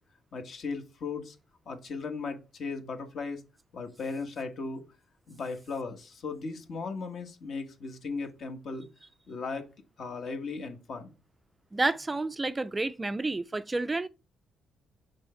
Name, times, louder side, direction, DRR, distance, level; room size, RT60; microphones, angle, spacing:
voice 1, 0.3-1.4 1.7-3.4 3.7-4.8 5.3-8.9 9.3-9.6 10.0-11.1, left 4 dB, 60° left, 1.3 m, -37 dB
voice 2, 11.7-14.1, right 2 dB, 20° right, 0.3 m, -30 dB
6.2 x 3.9 x 4.3 m
cardioid pair, 90°, 0 cm